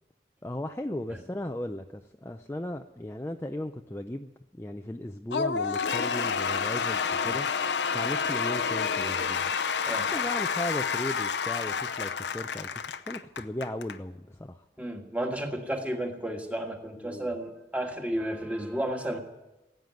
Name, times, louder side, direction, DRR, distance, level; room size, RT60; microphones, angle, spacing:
voice 1, 0.4-7.5 7.9-9.5 10.1-14.6 17.0-17.3, left 1 dB, 15° left, 5 dB, 0.4 m, -36 dB
Cheering / Applause / Crowd, 5.3-14.0, left 6 dB, 90° left, 0.8 m, -29 dB
voice 2, 14.8-19.2, right 1 dB, 10° right, 3 dB, 1.6 m, -32 dB
16.5 x 9.2 x 9.4 m, 1.0 s
head